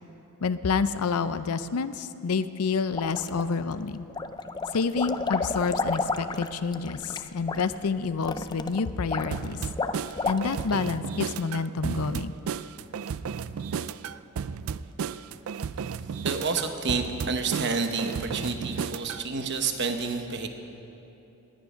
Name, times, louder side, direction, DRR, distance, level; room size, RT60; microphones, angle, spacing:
voice 1, 0.4-4.1 4.7-9.6 10.2-12.3, left 5 dB, 90° left, 13 dB, 0.5 m, -28 dB
sound 1, 2.9-3.7 4.1-10.8, left 3 dB, 20° left, 0.3 m, -31 dB
sound 2, 9.3-19.2, right 6 dB, 70° right, 0.4 m, -33 dB
voice 2, 16.2-20.5, right 4 dB, 50° right, 6 dB, 1.0 m, -29 dB
19.0 x 9.6 x 5.7 m, 3.0 s
head